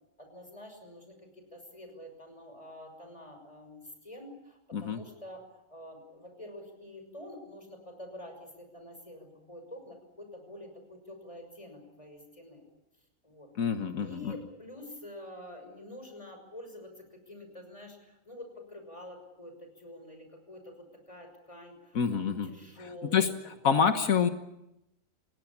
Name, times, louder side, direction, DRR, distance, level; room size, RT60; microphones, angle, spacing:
voice 1, 0.2-12.6 13.2-13.5 14.0-23.3 23.6-23.9, left 1 dB, 25° left, 6 dB, 6.1 m, -47 dB
voice 2, 13.6-14.3 21.9-22.5 23.1-23.3 23.6-24.3, left 6 dB, 85° left, 7 dB, 1.7 m, -26 dB
30.0 x 17.0 x 8.6 m, 0.89 s
omnidirectional pair, 1.4 m